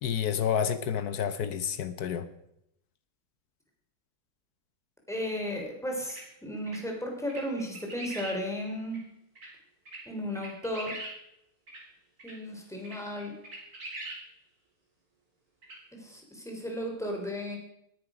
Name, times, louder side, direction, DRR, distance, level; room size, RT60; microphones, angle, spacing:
voice 1, 0.0-2.3, left 8 dB, 60° left, 12 dB, 1.1 m, -29 dB
voice 2, 5.1-9.0 10.1-11.0 12.2-13.3 15.9-17.6, equal, ahead, 0 dB, 3.2 m, -34 dB
sound 1, 6.1-6.2 6.7-6.8 7.3-8.4 8.9-9.0 9.4-9.5 9.9-10.0 10.3-11.1 11.7-11.8 12.2-12.3 12.8-14.2 15.6-15.8, right 2 dB, 45° right, 4.2 m, -41 dB
19.0 x 9.6 x 5.0 m, 0.80 s
omnidirectional pair, 2.3 m